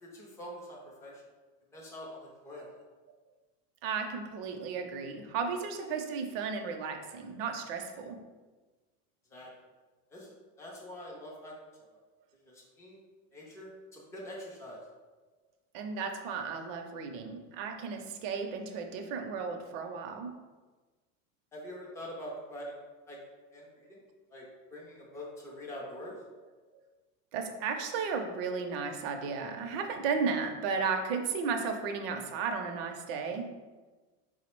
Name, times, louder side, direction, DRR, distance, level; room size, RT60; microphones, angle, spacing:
voice 1, 0.0-1.1 1.7-2.6 9.3-9.5 10.1-11.5 12.8-13.0 13.3-14.8 21.5-22.8 23.1-23.2 23.5-24.0 24.3-24.4 24.7-26.2, equal, 10° left, -4 dB, 0.4 m, -44 dB
voice 2, 3.8-8.2 15.7-20.3 27.3-33.5, right 5 dB, 50° right, 4 dB, 0.5 m, -34 dB
4.4 x 2.1 x 4.4 m, 1.3 s
supercardioid pair, 165°, 38 cm